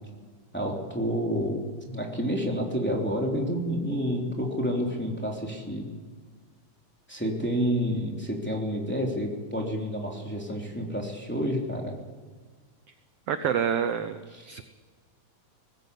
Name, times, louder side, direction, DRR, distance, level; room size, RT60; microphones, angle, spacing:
voice 1, 0.5-5.9 7.1-12.0 14.3-14.5, equal, 5° left, -1 dB, 2.9 m, -29 dB
voice 2, 13.3-14.2 14.5-14.6, right 8 dB, 70° right, 9 dB, 1.5 m, -27 dB
19.5 x 16.0 x 8.4 m, 1.5 s
omnidirectional pair, 3.6 m